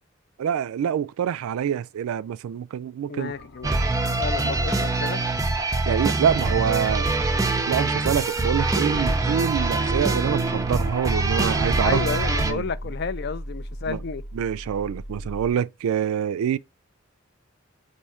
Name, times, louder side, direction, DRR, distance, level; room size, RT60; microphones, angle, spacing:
voice 1, 0.4-3.3 4.4-4.5 5.9-12.0 12.4-12.7 13.9-14.0 14.3-16.6, right 8 dB, 85° right, 0.3 m, -26 dB
voice 2, 3.1-3.8 4.2-5.2 11.8-14.2, left 5 dB, 50° left, 0.4 m, -31 dB
sound 1, 3.2-15.5, equal, 90° left, 1.5 m, -40 dB
sound 2, 3.6-12.5, right 2 dB, 15° right, 0.4 m, -24 dB
4.2 x 2.6 x 4.8 m
head